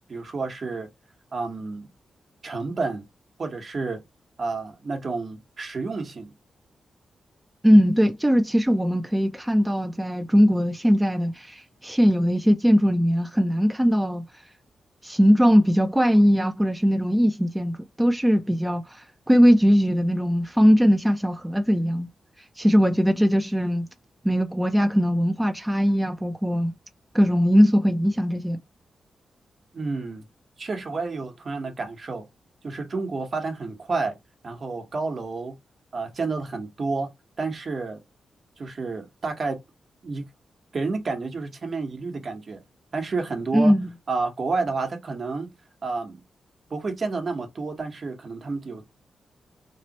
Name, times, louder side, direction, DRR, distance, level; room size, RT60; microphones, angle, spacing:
voice 1, 0.1-0.9 1.3-1.9 2.4-3.0 3.4-4.0 4.4-6.3 29.7-30.2 30.6-32.3 32.6-34.2 34.4-35.6 35.9-37.1 37.4-38.0 38.6-39.6 40.0-40.3 40.7-42.6 42.9-43.7 44.1-45.5 45.8-46.2 46.7-48.8, right 3 dB, 55° right, 1.1 m, -30 dB
voice 2, 7.6-14.3 15.0-22.1 22.6-23.9 24.2-26.7 27.1-28.6 43.5-43.9, equal, 10° right, 0.6 m, -20 dB
3.2 x 2.4 x 2.9 m
supercardioid pair, 50°, 0 cm